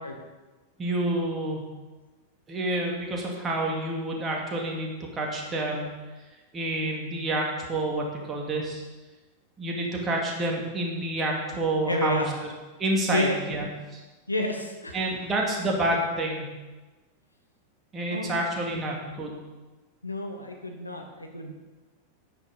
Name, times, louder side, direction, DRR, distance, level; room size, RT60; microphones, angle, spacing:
voice 1, 0.8-1.7 2.5-5.9 6.5-8.8 9.6-12.2 12.8-13.7 13.9-14.0 14.9-16.5 17.9-19.4, right 1 dB, 20° right, -1 dB, 2.8 m, -28 dB
voice 2, 11.8-12.3 13.1-13.3 14.3-15.0 18.1-18.5 20.0-21.5, left 2 dB, 85° left, 3 dB, 1.6 m, -30 dB
10.5 x 10.0 x 5.3 m, 1.2 s
figure-of-eight pair, 90°, 0 cm